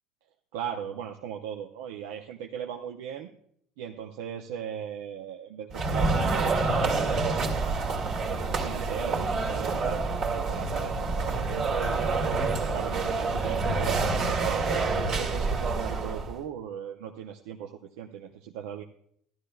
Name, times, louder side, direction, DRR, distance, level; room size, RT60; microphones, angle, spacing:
voice 1, 0.5-3.3 3.8-8.1 8.6-12.4 12.7-14.8 15.1-18.8, right 9 dB, 75° right, 4 dB, 0.6 m, -38 dB
sound 1, 5.7-16.4, right 3 dB, 60° right, 1.8 m, -27 dB
14.5 x 12.0 x 2.3 m, 0.67 s
hypercardioid pair, 70°, 0 cm